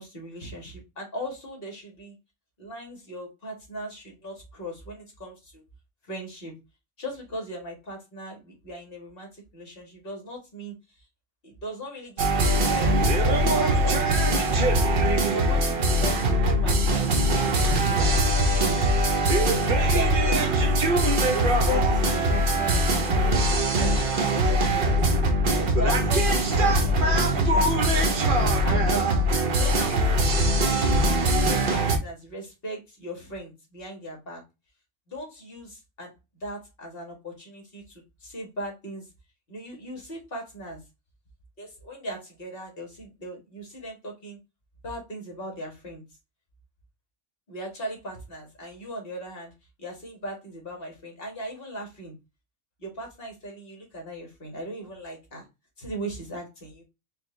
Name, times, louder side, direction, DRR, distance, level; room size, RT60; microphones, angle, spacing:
voice 1, 0.0-2.1 2.6-5.6 6.1-6.6 7.0-10.8 11.4-14.5 15.3-18.8 19.6-20.7 21.3-23.4 23.8-25.1 25.6-27.9 28.6-34.4 35.1-39.1 39.5-40.8 41.6-44.4 44.8-46.0 47.5-49.5 49.8-52.2 52.8-55.5 55.8-56.8, equal, 45° left, 1 dB, 1.8 m, -38 dB
sound 1, 12.2-32.0, right 1 dB, 50° right, 0.9 m, -22 dB
4.6 x 2.4 x 3.1 m, 0.24 s
omnidirectional pair, 1.3 m